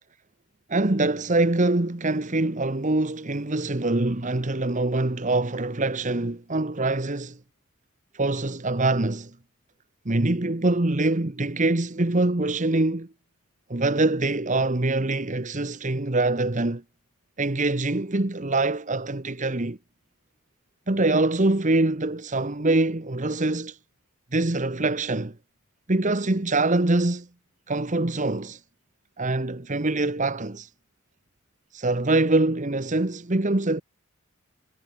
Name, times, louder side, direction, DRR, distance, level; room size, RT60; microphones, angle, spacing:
voice 1, 0.7-7.4 8.1-9.3 10.0-13.1 13.7-16.8 17.4-19.8 20.9-23.8 24.3-25.3 25.9-27.3 27.7-28.6 29.2-30.7 31.7-33.8, right 2 dB, 35° right, 1.2 m, -24 dB
head